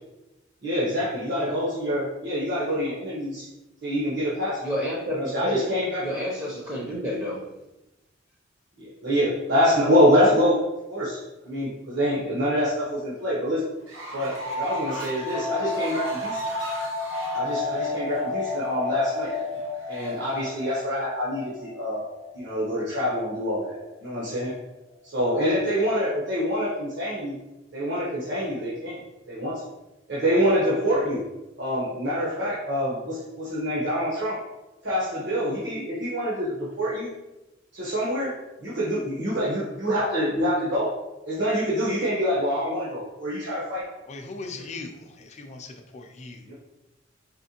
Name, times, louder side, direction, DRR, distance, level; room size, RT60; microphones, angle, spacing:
voice 1, 0.6-3.5 3.8-4.6 5.1-6.2 7.0-7.1 8.8-10.6 10.9-13.6 14.1-16.4 17.3-19.3 19.9-22.0 22.3-24.5 25.1-27.4 27.7-29.0 29.3-29.6 30.1-31.2 31.6-34.4 34.8-37.1 37.7-38.4 38.6-40.9 41.2-43.8 46.4-46.5, equal, 65° right, -8 dB, 1.0 m, -26 dB
voice 2, 4.6-5.7 6.0-7.5, left 1 dB, 20° right, -4 dB, 0.6 m, -30 dB
Fowl, 13.8-20.8, right 1 dB, 85° right, 1.1 m, -41 dB
sound 1, 14.4-23.8, left 3 dB, 70° left, 0.7 m, -32 dB
voice 3, 44.1-46.5, left 3 dB, 35° left, 4 dB, 0.5 m, -39 dB
4.3 x 3.1 x 2.8 m, 1.0 s
head